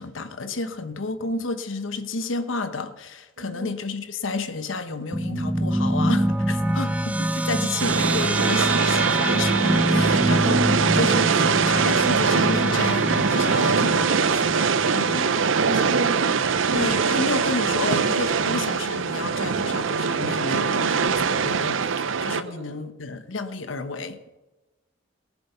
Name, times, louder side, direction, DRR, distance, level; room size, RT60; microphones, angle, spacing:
voice 1, 0.0-15.4 15.7-15.9 16.7-24.3, left 3 dB, 80° left, 1.0 m, -31 dB
voice 2, 3.4-3.8 15.1-16.3 16.7-17.1 22.4-22.8, right 1 dB, 60° right, 1.8 m, -33 dB
sound 1, 5.1-15.9, right 1 dB, 5° right, 0.5 m, -25 dB
sound 2, 7.8-22.4, right 5 dB, 80° right, 0.6 m, -22 dB
18.0 x 7.6 x 6.8 m
head